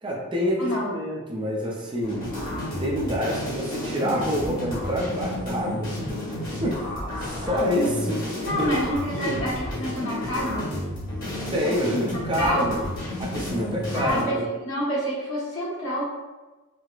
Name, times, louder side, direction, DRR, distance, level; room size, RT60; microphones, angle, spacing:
voice 1, 0.0-2.3 2.8-5.9 6.6-8.2 8.5-9.4 11.5-12.9 13.2-14.4, equal, 20° right, -2 dB, 0.4 m, -27 dB
voice 2, 0.6-0.9 8.4-10.7 11.6-12.0 12.3-12.7 13.9-14.4 14.6-16.0, equal, 80° left, -6 dB, 1.2 m, -27 dB
sound 1, 2.0-14.2, left 1 dB, 45° left, 1.1 m, -31 dB
4.5 x 2.0 x 2.4 m, 1.2 s
head